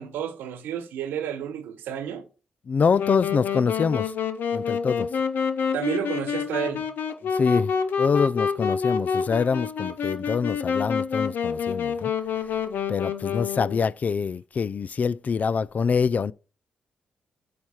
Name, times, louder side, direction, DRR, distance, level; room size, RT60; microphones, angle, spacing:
voice 1, 0.0-2.3 5.7-6.9, right 9 dB, 80° right, 1.0 m, -31 dB
voice 2, 2.7-4.1 4.5-5.1 7.3-7.7 8.0-12.1 12.9-16.3, left 5 dB, 50° left, 0.4 m, -25 dB
Wind instrument woodwind instrument, 3.0-13.9, left 6 dB, 70° left, 0.9 m, -28 dB
8.6 x 3.3 x 5.6 m
hypercardioid pair, 45°, 3 cm